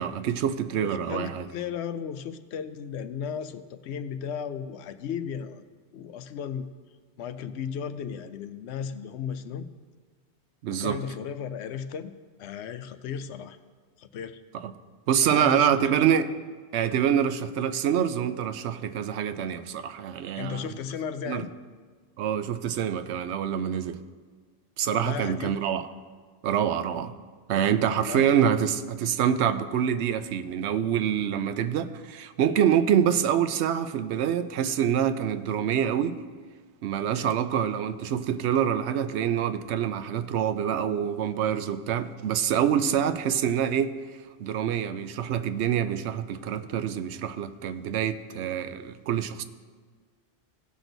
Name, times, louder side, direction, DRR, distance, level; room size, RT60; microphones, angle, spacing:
voice 1, 0.0-1.5 10.6-11.0 14.6-14.7 15.1-16.3 16.7-20.7 21.3-21.5 22.2-24.0 24.8-25.9 26.4-27.1 27.5-36.2 36.8-43.9 44.4-49.4, right 9 dB, 80° right, 11 dB, 0.9 m, -26 dB
voice 2, 0.8-5.6 5.9-6.7 7.2-9.7 10.7-12.1 12.4-13.6 14.0-14.4 15.2-16.0 20.4-21.5 24.9-25.6 27.9-28.3 32.9-33.0 37.0-37.3 43.0-43.1, left 7 dB, 80° left, 11 dB, 0.9 m, -35 dB
16.5 x 6.1 x 3.9 m, 1.5 s
omnidirectional pair, 1.1 m